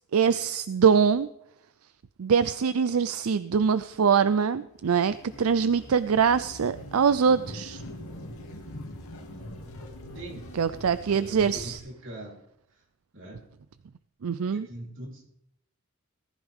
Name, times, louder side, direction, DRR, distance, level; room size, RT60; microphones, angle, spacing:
voice 1, 0.1-1.3 2.2-7.8 10.5-11.8 14.2-14.7, right 6 dB, 80° right, 14 dB, 0.5 m, -23 dB
sound 1, 4.7-11.8, left 1 dB, 80° left, 2.6 m, -43 dB
voice 2, 10.1-10.5 10.9-12.4 12.7-12.8 13.1-13.4 14.5-15.3, right 1 dB, 60° right, -2 dB, 3.7 m, -42 dB
18.5 x 14.0 x 3.6 m, 0.77 s
head